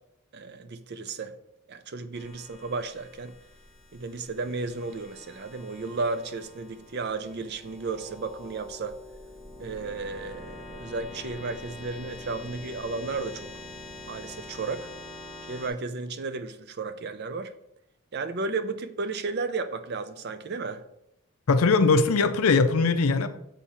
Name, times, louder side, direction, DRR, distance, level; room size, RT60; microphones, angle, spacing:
voice 1, 0.3-1.3 1.7-3.3 3.9-8.9 9.6-13.5 14.1-14.9 15.5-17.5 18.1-20.8, right 3 dB, 45° right, 0.4 m, -33 dB
sound 1, 2.1-15.7, left 2 dB, 5° left, 1.0 m, -45 dB
voice 2, 21.5-23.3, left 4 dB, 75° left, 0.5 m, -20 dB
7.2 x 3.5 x 4.2 m
head